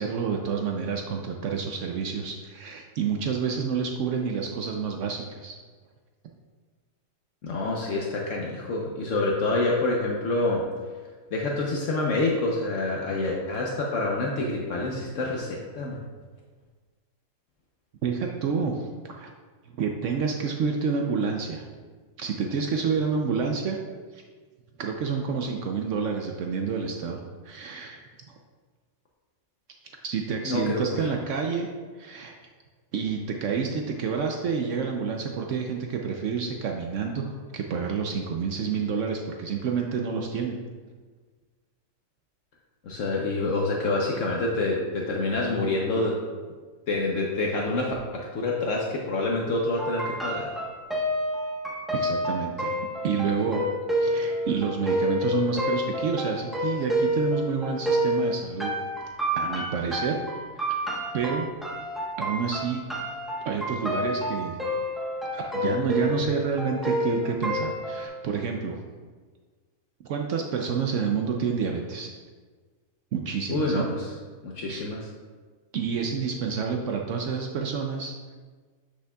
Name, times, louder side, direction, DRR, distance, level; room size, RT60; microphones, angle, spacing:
voice 1, 0.0-5.6 18.0-19.3 19.8-21.6 22.2-23.8 24.1-24.2 24.8-27.2 27.4-28.1 30.0-31.7 32.0-32.3 32.9-40.6 51.9-52.8 53.0-53.6 54.0-58.7 59.4-60.2 60.6-60.7 61.1-61.5 62.2-62.8 63.5-64.6 65.3-68.8 70.0-72.1 73.1-73.9 74.7-74.8 75.7-78.1, right 6 dB, 70° right, 2 dB, 0.9 m, -29 dB
voice 2, 7.4-10.6 11.3-16.0 30.4-31.1 42.8-46.2 46.9-50.5 73.5-74.1 74.4-75.1, left 2 dB, 65° left, -2 dB, 1.1 m, -27 dB
sound 1, 49.8-68.1, equal, ahead, 0.8 m, -29 dB
8.2 x 6.3 x 2.3 m, 1.5 s
omnidirectional pair, 1.4 m